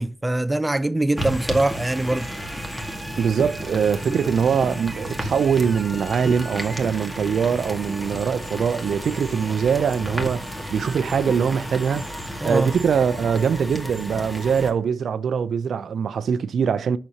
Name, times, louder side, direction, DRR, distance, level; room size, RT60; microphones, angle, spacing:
voice 1, 0.0-2.3 4.0-4.2 12.4-12.7, right 2 dB, 15° right, 0.5 m, -23 dB
sound 1, 1.2-14.7, equal, 5° left, 2.0 m, -32 dB
voice 2, 3.2-17.0, right 7 dB, 70° right, 0.5 m, -23 dB
9.9 x 6.9 x 2.9 m
cardioid pair, 105°, 0 cm